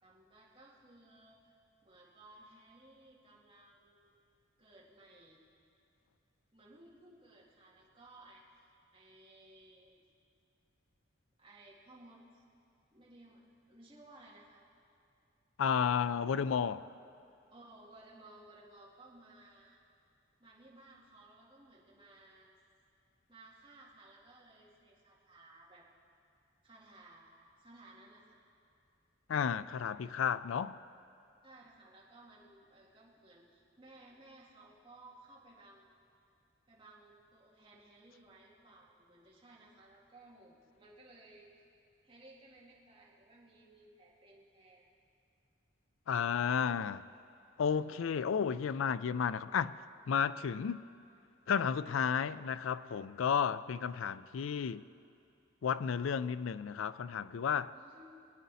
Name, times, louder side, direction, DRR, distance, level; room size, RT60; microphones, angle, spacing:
voice 1, 0.0-4.1 4.6-5.4 6.5-10.0 11.4-12.4 12.9-14.7 17.5-19.8 20.4-22.5 23.3-25.9 26.6-28.4 31.4-35.9 36.7-41.5 42.0-44.8 57.7-58.2, right 2 dB, 25° right, 2.2 m, -58 dB
voice 2, 15.6-16.9 29.3-30.8 46.1-47.0 47.6-49.8 50.1-50.9 51.5-54.8 55.6-57.7, left 7 dB, 80° left, 0.4 m, -32 dB
22.5 x 9.5 x 4.1 m
head